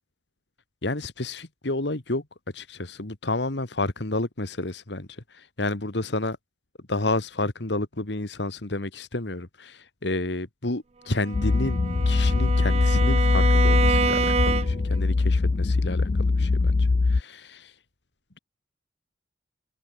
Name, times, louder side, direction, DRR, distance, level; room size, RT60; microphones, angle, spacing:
voice 1, 0.8-2.2 2.5-6.4 6.9-11.8 12.1-17.7, left 2 dB, 70° left, 1.9 m, -30 dB
Bowed string instrument, 11.1-15.0, right 5 dB, 35° right, 0.5 m, -27 dB
sound 1, 11.3-17.2, left 3 dB, 40° left, 0.4 m, -22 dB
head